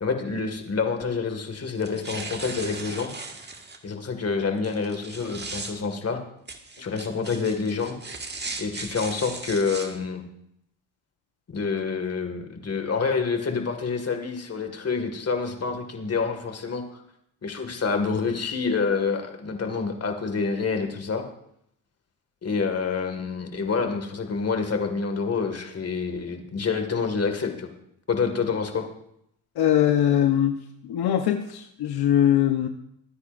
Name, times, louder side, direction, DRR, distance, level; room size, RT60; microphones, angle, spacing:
voice 1, 0.0-3.1 3.8-6.2 6.8-8.0 8.6-10.3 11.5-17.0 17.4-21.2 22.4-27.7 28.1-28.9, left 5 dB, 40° left, 5 dB, 2.1 m, -27 dB
sound 1, 1.8-3.8 4.6-5.7 6.5-9.9, right 3 dB, 25° right, 1.8 m, -37 dB
voice 2, 29.6-30.6 30.8-32.7, left 10 dB, 80° left, 6 dB, 1.0 m, -21 dB
22.5 x 9.8 x 2.6 m, 0.73 s
cardioid pair, 85°, 38 cm